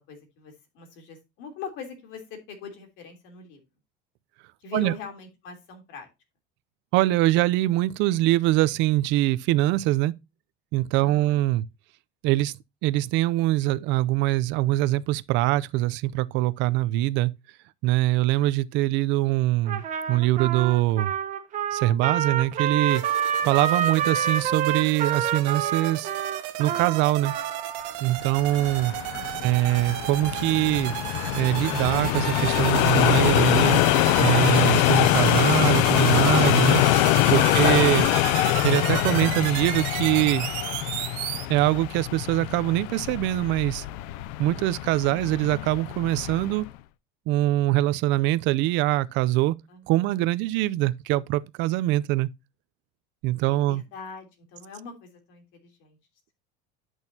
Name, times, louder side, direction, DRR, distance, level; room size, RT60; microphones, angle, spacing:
voice 1, 0.0-3.6 4.6-6.1 11.0-11.4 23.8-23.9 28.5-30.0 37.5-37.8 49.7-50.2 53.4-56.0, left 5 dB, 60° left, 3.1 m, -43 dB
voice 2, 6.9-10.1 10.7-11.6 12.2-12.5 12.8-17.3 17.8-21.1 21.7-23.0 23.4-26.1 26.6-27.3 28.0-28.9 29.4-30.9 31.4-33.8 34.2-36.8 37.3-38.1 38.6-40.5 41.5-43.9 44.4-46.7 47.3-49.6 49.9-52.3 53.2-53.8, right 17 dB, 60° right, 0.5 m, -23 dB
Trumpet, 19.7-28.0, right 8 dB, 35° right, 1.4 m, -28 dB
sound 1, 22.9-41.4, right 14 dB, 80° right, 1.2 m, -34 dB
sound 2, 28.4-46.7, left 17 dB, 80° left, 0.5 m, -24 dB
10.5 x 6.3 x 2.7 m
cardioid pair, 145°, 21 cm